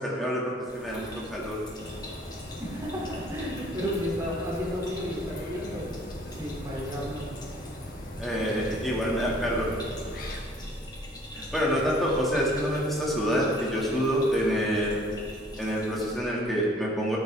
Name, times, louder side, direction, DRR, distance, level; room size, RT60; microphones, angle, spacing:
voice 1, 0.0-1.6 8.2-9.7 10.1-10.3 11.3-15.0 15.6-17.2, equal, ahead, -5 dB, 2.1 m, -27 dB
sound 1, 0.7-16.2, equal, 20° left, 1.4 m, -41 dB
sound 2, 1.8-10.4, equal, 45° left, 1.2 m, -41 dB
voice 2, 2.6-5.9 6.3-7.3, equal, 15° right, -5 dB, 2.8 m, -32 dB
13.0 x 10.5 x 3.5 m, 2.1 s
head